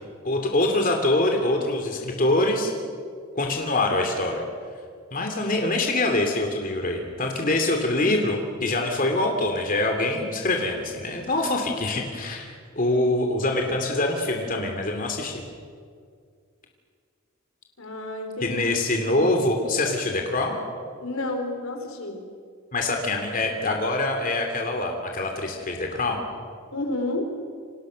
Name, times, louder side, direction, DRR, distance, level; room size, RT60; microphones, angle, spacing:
voice 1, 0.2-2.7 3.3-4.4 5.1-15.4 18.4-20.6 22.7-26.2, left 2 dB, 40° left, 2 dB, 3.0 m, -24 dB
voice 2, 17.8-18.6 21.0-22.3 26.7-27.4, left 2 dB, 80° left, 4 dB, 4.5 m, -30 dB
29.5 x 26.5 x 6.5 m, 2.2 s
head